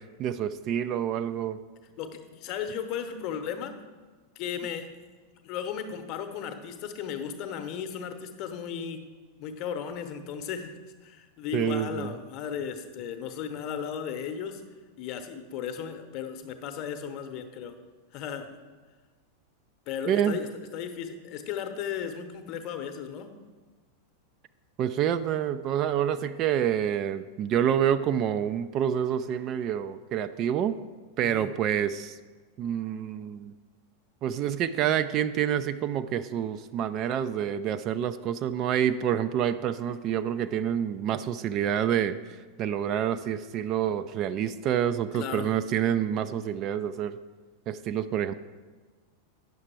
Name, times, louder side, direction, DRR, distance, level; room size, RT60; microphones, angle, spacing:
voice 1, 0.2-1.6 11.5-12.1 20.1-20.4 24.8-30.8 31.2-32.2 32.6-33.5 34.2-47.2 47.7-48.3, right 9 dB, 35° right, 11 dB, 0.3 m, -27 dB
voice 2, 2.0-3.7 4.4-4.9 5.4-9.0 9.4-10.7 11.0-14.6 15.0-17.7 18.1-18.5 19.9-20.5 20.7-23.3 31.2-31.5 45.1-45.5, left 8 dB, 40° left, 7 dB, 0.8 m, -35 dB
9.2 x 6.6 x 4.4 m, 1.4 s
figure-of-eight pair, 90°, 0 cm